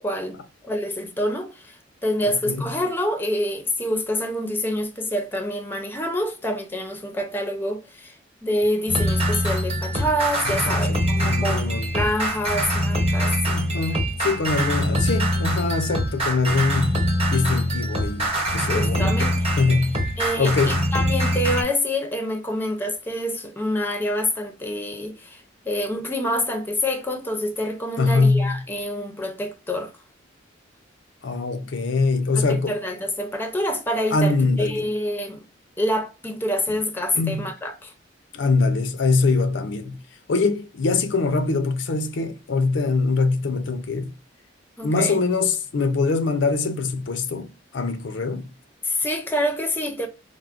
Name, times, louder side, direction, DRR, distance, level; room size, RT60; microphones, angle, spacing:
voice 1, 0.0-13.6 18.7-19.5 20.2-29.9 32.3-35.5 35.8-37.9 44.8-45.2 48.8-50.1, left 1 dB, 10° left, 0.5 m, -27 dB
voice 2, 2.2-2.7 10.4-11.9 13.5-20.0 20.4-20.8 28.0-28.6 31.2-32.8 34.1-34.9 37.1-37.4 38.3-40.0 40.3-44.1 44.8-48.5, left 3 dB, 70° left, 0.5 m, -23 dB
sound 1, 8.9-21.6, equal, 30° right, 0.9 m, -24 dB
4.6 x 2.0 x 2.4 m
head